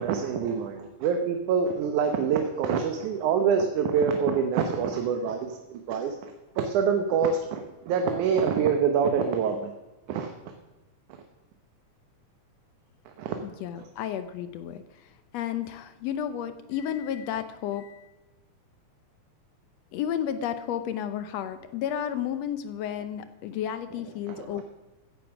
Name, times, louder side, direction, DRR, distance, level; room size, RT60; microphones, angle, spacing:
voice 1, 0.0-6.2 6.6-9.7 10.1-10.3 13.2-13.4 24.3-24.6, right 6 dB, 75° right, 5 dB, 2.4 m, -26 dB
voice 2, 13.4-18.1 19.9-24.6, left 9 dB, 75° left, 11 dB, 1.6 m, -32 dB
15.0 x 10.0 x 5.9 m, 1.1 s
omnidirectional pair, 3.5 m